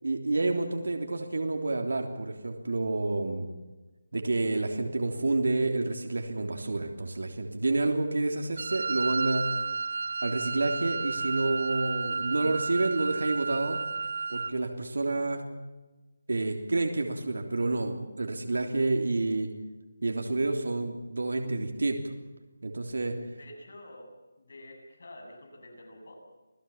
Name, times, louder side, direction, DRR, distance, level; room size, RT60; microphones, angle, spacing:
voice 1, 0.0-3.5 4.1-9.4 10.2-13.8 14.3-15.4 16.3-19.5 20.0-22.0 22.6-23.1, right 2 dB, 80° right, 3 dB, 3.3 m, -29 dB
Wind instrument woodwind instrument, 8.6-14.6, right 4 dB, 50° right, 0.7 m, -32 dB
voice 2, 23.4-24.1 24.4-26.2, left 1 dB, 55° left, 2 dB, 7.8 m, -48 dB
27.5 x 17.0 x 7.3 m, 1.2 s
figure-of-eight pair, 175°, 0 cm